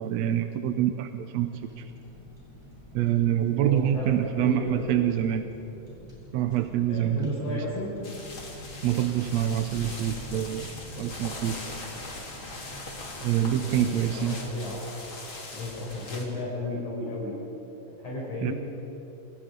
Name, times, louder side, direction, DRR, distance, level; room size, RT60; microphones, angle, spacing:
voice 1, 0.0-1.9 2.9-5.5 6.3-7.7 8.8-10.7 11.0-11.6 13.2-14.4 18.4-18.5, right 11 dB, 70° right, 7 dB, 1.8 m, -26 dB
Car, 1.6-14.2, equal, 10° right, 7.9 m, -48 dB
voice 2, 3.6-5.0 6.9-8.0 13.8-14.8 15.3-17.4 18.0-18.5, left 1 dB, 70° left, -6 dB, 8.4 m, -33 dB
sound 1, 8.0-16.3, left 2 dB, 40° left, 3.9 m, -40 dB
29.5 x 28.0 x 5.3 m, 3.0 s
omnidirectional pair, 3.6 m